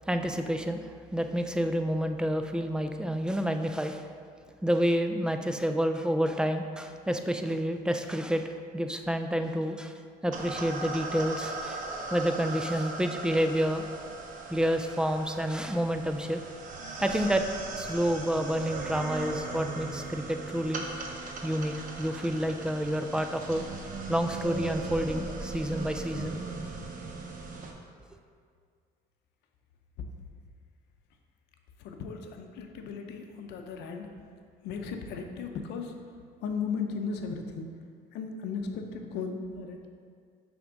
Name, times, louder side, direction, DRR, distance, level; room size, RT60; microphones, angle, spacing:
voice 1, 0.1-4.1 4.6-9.9 10.2-11.8 12.1-13.9 14.5-16.4 17.0-17.4 17.7-20.9 21.4-23.7 24.1-26.4, equal, 5° right, 6 dB, 0.3 m, -29 dB
sound 1, 10.3-27.7, right 3 dB, 50° right, 0.8 m, -38 dB
voice 2, 31.8-34.1 34.6-35.9 36.4-37.7 38.1-39.9, left 5 dB, 85° left, 5 dB, 0.6 m, -36 dB
6.0 x 3.5 x 5.1 m, 2.1 s
cardioid pair, 110°, 17 cm